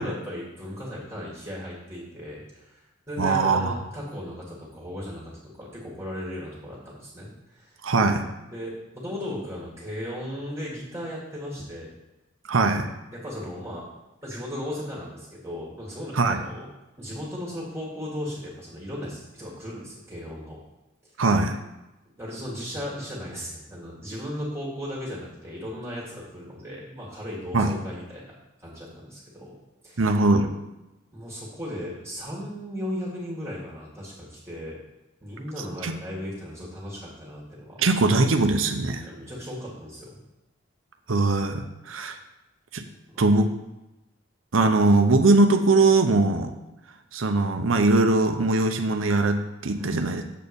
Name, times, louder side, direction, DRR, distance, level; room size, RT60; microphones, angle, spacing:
voice 1, 0.0-7.8 8.5-11.9 13.1-13.8 14.2-16.7 17.0-20.6 22.2-28.2 28.6-29.5 29.8-30.1 31.1-34.8 35.2-38.0 38.4-38.5 39.0-40.2 43.1-43.3 49.7-50.1, equal, 15° right, -6 dB, 1.9 m, -36 dB
voice 2, 3.2-3.7 7.8-8.2 12.5-12.9 16.1-16.4 21.2-21.6 27.5-27.7 30.0-30.5 35.8-36.0 37.8-39.0 41.1-42.2 42.7-42.8 43.2-43.5 44.5-46.5 47.1-50.2, right 3 dB, 85° right, 6 dB, 0.8 m, -21 dB
7.5 x 4.5 x 6.8 m, 0.97 s
head